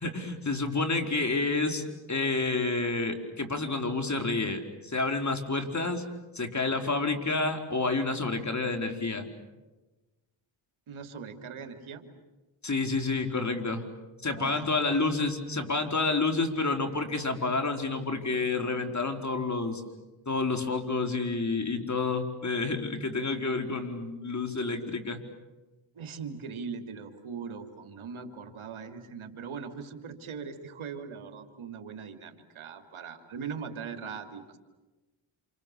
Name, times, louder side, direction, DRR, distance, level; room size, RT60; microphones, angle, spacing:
voice 1, 0.0-6.0 6.3-9.3 12.6-13.9 14.2-19.8 20.3-25.2, left 3 dB, 35° left, 5 dB, 4.4 m, -29 dB
voice 2, 10.9-12.1 14.4-15.3 25.9-34.6, right 6 dB, 75° right, 6 dB, 3.0 m, -40 dB
28.5 x 28.5 x 7.0 m, 1.1 s
cardioid pair, 60°, 48 cm